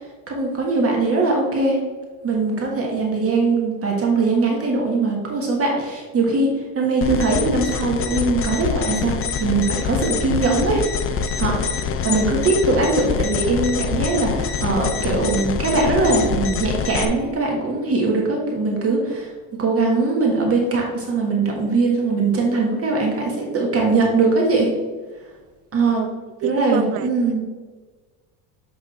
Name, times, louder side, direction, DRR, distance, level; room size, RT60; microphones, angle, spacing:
voice 1, 0.3-1.8 2.2-6.5 6.7-19.3 19.6-24.7 25.7-26.0 26.4-27.4, right 3 dB, 30° right, -1 dB, 1.6 m, -21 dB
sound 1, 7.0-17.1, left 6 dB, 30° left, 0.5 m, -25 dB
voice 2, 26.4-27.1, right 11 dB, 80° right, 13 dB, 0.6 m, -26 dB
7.9 x 3.7 x 4.3 m, 1.4 s
supercardioid pair, 110°, 46 cm